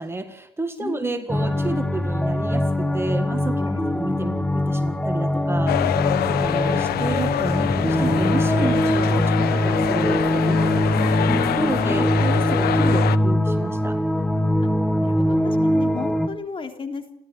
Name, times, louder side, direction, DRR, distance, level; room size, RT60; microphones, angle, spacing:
voice 1, 0.0-3.6 3.9-14.0, right 3 dB, 15° right, 7 dB, 1.7 m, -31 dB
voice 2, 0.8-1.3 3.6-4.0 11.8-12.2 15.0-17.0, left 5 dB, 30° left, 5 dB, 3.4 m, -34 dB
sound 1, 1.3-16.3, left 1 dB, 5° left, 1.3 m, -22 dB
sound 2, 5.7-13.2, left 12 dB, 70° left, 1.0 m, -25 dB
30.0 x 12.5 x 8.1 m, 0.73 s
cardioid pair, 110°, 17 cm